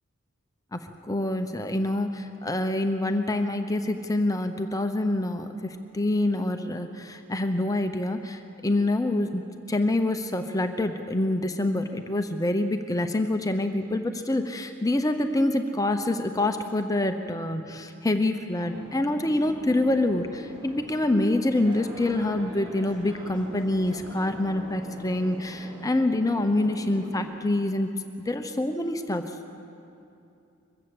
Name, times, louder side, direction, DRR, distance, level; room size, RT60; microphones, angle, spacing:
voice 1, 0.7-9.4 9.7-27.9 28.3-29.3, left 1 dB, 15° left, 7 dB, 0.8 m, -26 dB
sound 1, 18.5-27.2, equal, 25° right, 5.2 m, -43 dB
22.0 x 14.5 x 7.9 m, 2.7 s
head